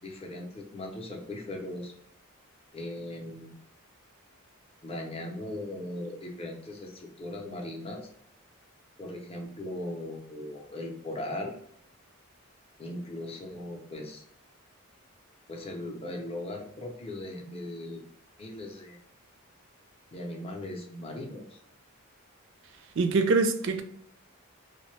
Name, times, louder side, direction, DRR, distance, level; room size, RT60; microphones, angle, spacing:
voice 1, 0.0-1.9 2.7-3.5 4.8-8.1 9.0-11.5 12.8-14.2 15.5-18.0 18.4-19.0 20.1-21.6, left 1 dB, 25° left, 0.5 m, -38 dB
voice 2, 23.0-23.8, right 3 dB, 55° right, 0.3 m, -24 dB
2.6 x 2.1 x 3.1 m
head